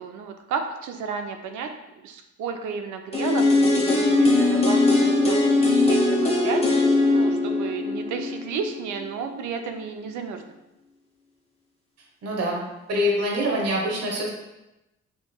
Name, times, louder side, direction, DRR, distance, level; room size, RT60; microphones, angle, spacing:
voice 1, 0.0-1.7 2.0-5.4 5.6-6.8 7.1-10.4, right 6 dB, 75° right, 5 dB, 0.5 m, -32 dB
sound 1, 3.1-9.0 9.3-9.4, left 2 dB, 20° left, 0.9 m, -20 dB
voice 2, 12.2-12.6 12.9-14.4, equal, 55° right, -1 dB, 1.0 m, -25 dB
5.3 x 3.1 x 2.2 m, 0.95 s
cardioid pair, 90°, 30 cm